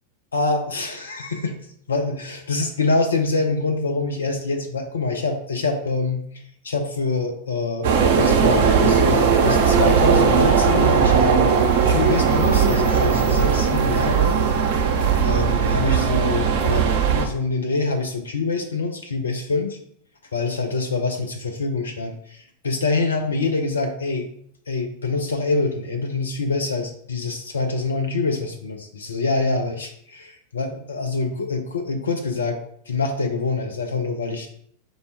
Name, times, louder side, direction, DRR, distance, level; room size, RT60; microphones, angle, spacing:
voice 1, 0.3-1.6 1.9-6.2 6.6-11.6 11.8-14.4 15.2-19.8 20.3-24.3 24.7-32.6 32.9-34.5, left 3 dB, 70° left, 4 dB, 0.5 m, -25 dB
sound 1, 7.8-17.3, right 6 dB, 50° right, 0.6 m, -18 dB
5.3 x 2.3 x 4.2 m, 0.66 s
figure-of-eight pair, 90°, 0 cm